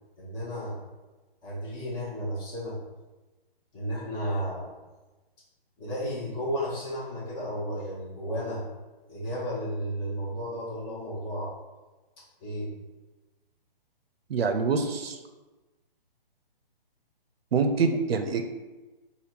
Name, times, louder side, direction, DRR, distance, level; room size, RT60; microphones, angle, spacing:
voice 1, 0.2-0.8 1.4-2.8 3.7-4.7 5.8-8.6 9.1-11.5 12.4-12.7, equal, 15° left, -7 dB, 0.8 m, -33 dB
voice 2, 14.3-15.2 17.5-18.5, right 4 dB, 85° right, 6 dB, 0.5 m, -25 dB
3.5 x 2.3 x 4.2 m, 1.2 s
hypercardioid pair, 150°, 29 cm